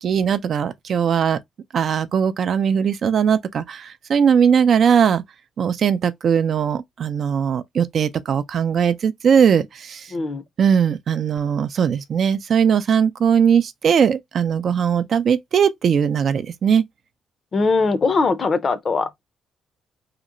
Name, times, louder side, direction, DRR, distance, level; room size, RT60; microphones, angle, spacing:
voice 1, 0.0-1.4 1.7-5.2 5.6-10.1 10.6-16.8, right 7 dB, 60° right, 0.3 m, -19 dB
voice 2, 10.1-10.4 17.5-19.3, left 4 dB, 45° left, 0.5 m, -21 dB
2.8 x 2.0 x 2.5 m
cardioid pair, 90°, 0 cm